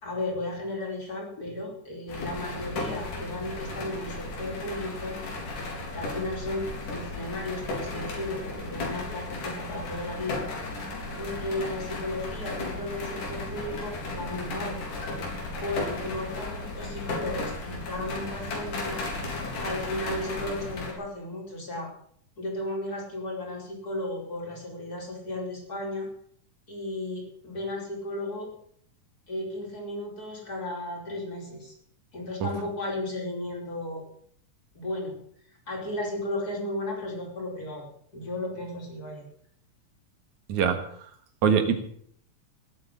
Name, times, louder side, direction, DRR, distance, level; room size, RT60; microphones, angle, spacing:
voice 1, 0.0-5.1 5.9-10.5 11.2-14.8 15.6-19.0 19.6-21.9 22.4-26.1 26.7-28.5 29.3-31.7 32.1-34.0 34.7-35.1 35.7-37.8 38.1-39.3, left 1 dB, 25° left, 0 dB, 5.2 m, -34 dB
sound 1, 2.1-20.9, left 2 dB, 80° left, 5.4 m, -35 dB
voice 2, 40.5-40.9 41.4-41.8, right 7 dB, 70° right, 8 dB, 3.0 m, -23 dB
18.5 x 8.9 x 7.5 m, 0.63 s
omnidirectional pair, 3.6 m